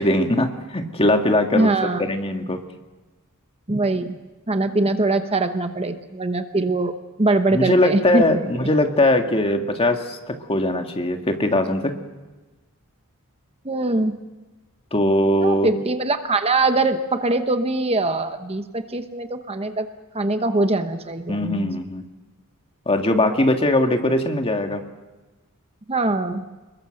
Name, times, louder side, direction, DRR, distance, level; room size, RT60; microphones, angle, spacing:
voice 1, 0.0-1.7 2.0-2.6 7.5-11.9 14.9-15.7 21.3-22.0 22.9-24.8, left 1 dB, 25° left, 5 dB, 1.9 m, -20 dB
voice 2, 1.5-2.0 3.7-4.2 4.5-8.2 13.6-14.1 15.4-19.9 20.1-21.7 25.9-26.4, right 2 dB, 25° right, 8 dB, 1.0 m, -22 dB
27.5 x 22.0 x 6.5 m, 1.2 s
head